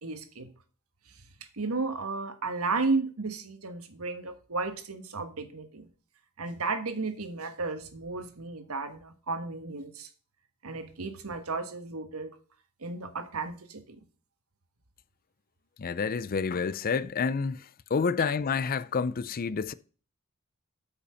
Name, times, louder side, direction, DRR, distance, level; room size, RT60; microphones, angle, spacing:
voice 1, 0.0-0.5 1.6-5.9 6.4-10.1 10.6-12.3 12.8-14.0, right 3 dB, 85° right, 1.4 m, -33 dB
voice 2, 15.8-17.7 17.9-19.7, left 5 dB, 40° left, 0.4 m, -29 dB
8.4 x 5.7 x 5.6 m
head